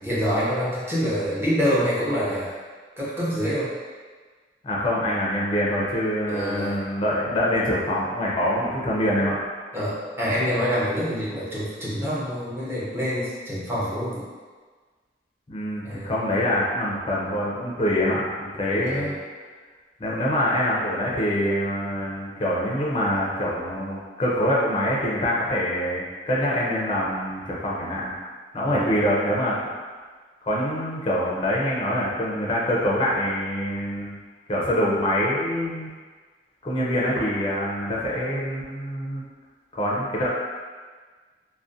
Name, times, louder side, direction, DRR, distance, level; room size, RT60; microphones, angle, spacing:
voice 1, 0.0-2.5 3.0-3.7 6.3-6.8 9.7-14.2 15.8-16.1 18.7-19.2 28.6-28.9, equal, 15° right, -9 dB, 0.6 m, -26 dB
voice 2, 4.6-9.4 15.5-19.1 20.0-28.1 28.5-29.6 30.4-34.2 34.5-35.9 36.6-39.2 39.7-40.3, equal, 30° left, -5 dB, 0.4 m, -25 dB
2.4 x 2.1 x 2.5 m, 1.5 s
head